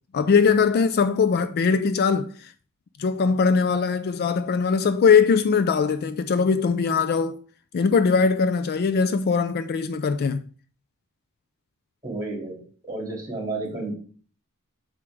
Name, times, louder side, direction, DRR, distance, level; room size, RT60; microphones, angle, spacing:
voice 1, 0.1-2.5 3.0-7.4 7.7-10.5, left 5 dB, 45° left, 0.3 m, -21 dB
voice 2, 12.0-14.0, right 2 dB, 15° right, 2.6 m, -32 dB
6.9 x 5.1 x 3.4 m
head